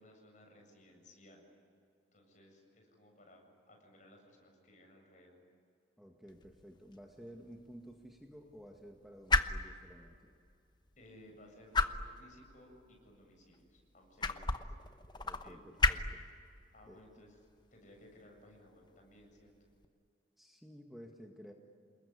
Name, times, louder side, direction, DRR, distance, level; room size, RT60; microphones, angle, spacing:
voice 1, 0.0-1.4 2.1-5.4 11.0-14.7 15.4-15.6 16.7-17.3 17.7-19.5, left 1 dB, 40° left, 2 dB, 7.8 m, -59 dB
voice 2, 6.0-10.3 15.2-16.2 16.9-17.0 20.4-21.5, equal, ahead, 1 dB, 1.8 m, -53 dB
sound 1, 6.3-19.8, left 3 dB, 25° left, 1.0 m, -38 dB
28.5 x 21.0 x 9.8 m, 2.3 s
head